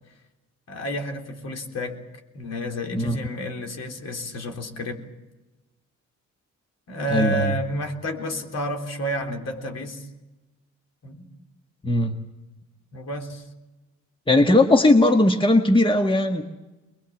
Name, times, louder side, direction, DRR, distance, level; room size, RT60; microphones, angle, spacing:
voice 1, 0.7-2.0 2.3-5.0 6.9-10.1 11.0-11.3 12.9-13.4, equal, 60° left, 3 dB, 3.7 m, -30 dB
voice 2, 7.1-7.6 11.8-12.1 14.3-16.4, left 2 dB, 15° left, 5 dB, 1.6 m, -18 dB
23.0 x 22.0 x 7.3 m, 1.1 s
cardioid pair, 90°, 30 cm